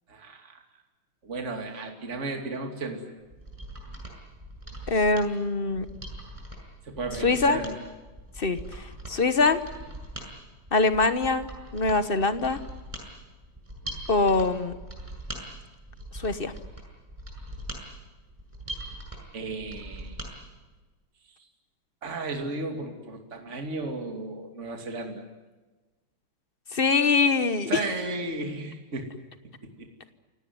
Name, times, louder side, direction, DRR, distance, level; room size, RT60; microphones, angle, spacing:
voice 1, 0.1-0.6 1.2-3.0 6.8-7.7 19.3-20.2 21.3-21.5 22.0-25.2 27.7-29.1 29.8-29.9, right 3 dB, 35° right, 3 dB, 2.9 m, -34 dB
Mechanisms, 3.2-20.3 20.7-20.8, right 1 dB, 15° right, 6.7 m, -41 dB
voice 2, 4.9-5.8 7.2-7.6 8.4-9.6 10.7-11.5 11.7-12.6 14.1-14.7 16.1-16.5 26.7-27.7, left 3 dB, 35° left, 11 dB, 1.0 m, -23 dB
28.5 x 18.0 x 9.5 m, 1.2 s
omnidirectional pair, 2.4 m